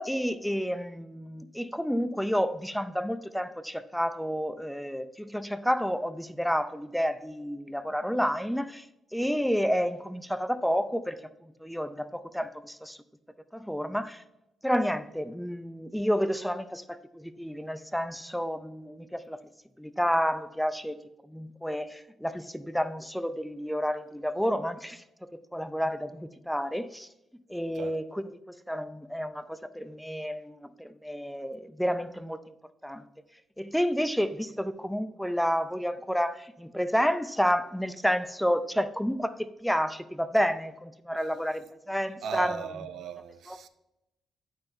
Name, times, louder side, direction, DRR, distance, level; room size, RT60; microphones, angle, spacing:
voice 1, 0.0-8.8 9.1-13.0 13.5-14.2 14.6-19.4 19.8-21.0 21.3-25.0 25.5-27.1 27.5-32.4 32.8-33.1 33.6-42.6 43.5-43.6, equal, ahead, 0.4 m, -30 dB
voice 2, 42.2-43.7, right 6 dB, 70° right, 0.5 m, -37 dB
8.8 x 5.7 x 2.6 m
cardioid pair, 90°, 0 cm